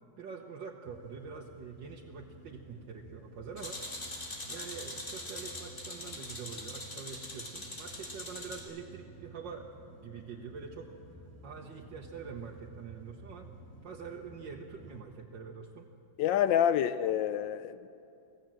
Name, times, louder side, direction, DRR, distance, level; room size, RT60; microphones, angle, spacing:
voice 1, 0.2-3.8 4.5-9.7 10.0-10.9 11.4-13.5 13.8-15.9, right 6 dB, 85° right, 2.0 m, -45 dB
sound 1, 0.8-15.0, right 2 dB, 10° left, 3.2 m, -53 dB
sound 2, 3.6-8.6, left 1 dB, 40° left, 3.8 m, -42 dB
voice 2, 16.2-17.9, left 10 dB, 85° left, 1.4 m, -27 dB
26.5 x 17.0 x 7.7 m
omnidirectional pair, 2.0 m